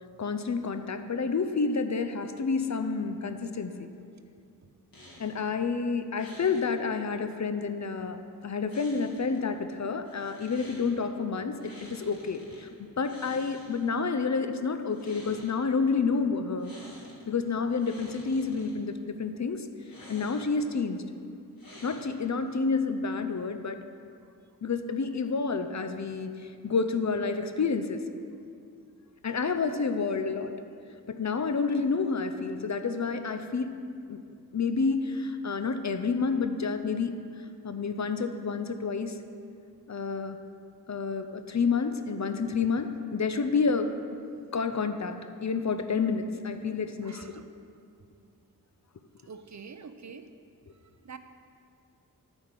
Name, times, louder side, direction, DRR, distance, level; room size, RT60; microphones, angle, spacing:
voice 1, 0.2-3.9 5.2-12.7 13.0-16.7 17.3-19.7 20.1-21.0 21.8-23.8 24.6-26.4 26.6-28.0 29.2-30.5 31.1-33.8 34.1-34.2 34.5-37.1 37.6-39.1 39.9-40.4 40.9-43.9 44.5-47.2, left 4 dB, 45° left, 9 dB, 0.7 m, -29 dB
sound 1, 4.9-5.4 6.1-6.7 8.7-9.4 10.0-10.9 11.6-12.6 13.0-14.0 14.8-15.5 16.6-17.2 17.6-18.7 19.8-20.6 21.6-22.3, left 1 dB, 65° left, 2.7 m, -50 dB
voice 2, 47.0-47.4 49.3-50.2 51.0-51.2, right 5 dB, 50° right, 9 dB, 0.6 m, -45 dB
9.4 x 5.1 x 7.4 m, 2.4 s
cardioid pair, 40°, 38 cm